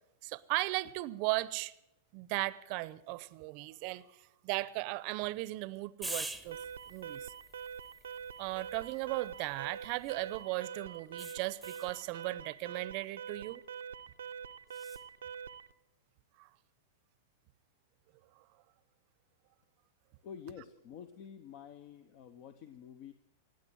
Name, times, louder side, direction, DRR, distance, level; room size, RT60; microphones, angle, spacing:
voice 1, 0.2-1.7 2.1-4.0 4.4-6.6 6.9-7.3 8.4-13.6 16.4-16.5, right 21 dB, 50° right, 0.7 m, -37 dB
sound 1, 6.0-10.4 11.2-12.0 14.7-15.0, right 2 dB, ahead, 0.9 m, -47 dB
Alarm, 6.5-15.7, right 7 dB, 85° right, 0.6 m, -45 dB
voice 2, 20.2-23.1, left 8 dB, 50° left, 1.0 m, -49 dB
17.0 x 9.0 x 9.1 m
hypercardioid pair, 125°, 0 cm